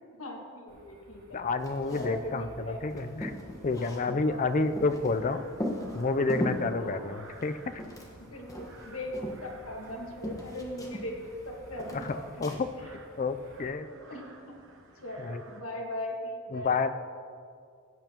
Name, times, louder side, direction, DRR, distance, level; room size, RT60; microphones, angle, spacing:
voice 1, 0.2-1.4 1.9-2.8 3.8-4.0 4.3-4.4 6.7-7.0 8.2-11.2 11.4-12.5 13.9-14.2 15.0-16.7, left 1 dB, 90° left, 0 dB, 1.7 m, -39 dB
sound 1, 0.7-13.7, equal, 85° right, 2.8 m, -55 dB
voice 2, 1.3-3.3 3.6-5.4 5.9-7.8 11.9-12.1 12.4-12.7 13.2-13.9 15.2-15.4 16.5-16.9, left 3 dB, 40° left, 10 dB, 0.5 m, -29 dB
sound 2, 1.6-2.3 2.5-2.6 2.9-5.2 5.5-6.7 7.3-8.2 8.5-9.9 10.2-11.5 11.8-12.6, equal, 15° left, 1.3 m, -37 dB
sound 3, 3.2-15.6, right 3 dB, 70° right, 1.2 m, -55 dB
16.0 x 8.8 x 3.0 m, 2.2 s
head